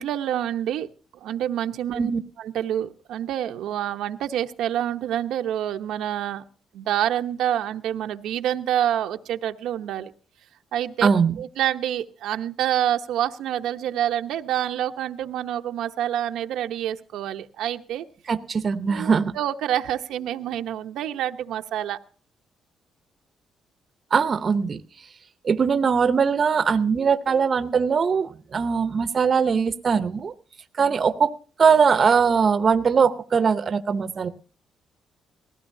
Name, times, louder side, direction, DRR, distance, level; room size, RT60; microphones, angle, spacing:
voice 1, 0.0-2.1 2.4-6.4 6.7-10.1 10.7-11.1 11.4-18.1 18.9-22.0, right 11 dB, 85° right, 6 dB, 0.9 m, -27 dB
voice 2, 11.0-11.3 18.3-19.3 24.1-24.8 25.4-30.3 30.8-31.3 31.6-34.3, right 6 dB, 35° right, 11 dB, 0.8 m, -21 dB
19.5 x 15.5 x 2.7 m, 0.39 s
cardioid pair, 145°, 0 cm